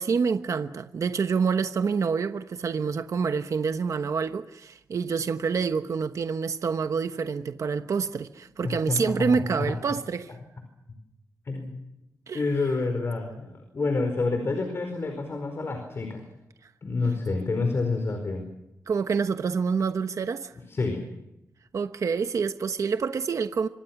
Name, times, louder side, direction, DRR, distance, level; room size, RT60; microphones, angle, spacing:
voice 1, 0.0-10.3 12.3-12.4 18.9-20.5 21.7-23.7, right 5 dB, 60° right, 1.1 m, -27 dB
voice 2, 8.6-9.8 11.4-11.7 12.3-16.3 16.8-18.4 20.7-21.0, left 3 dB, 45° left, 4.8 m, -28 dB
26.0 x 25.5 x 6.0 m
wide cardioid pair, 135°, 6 cm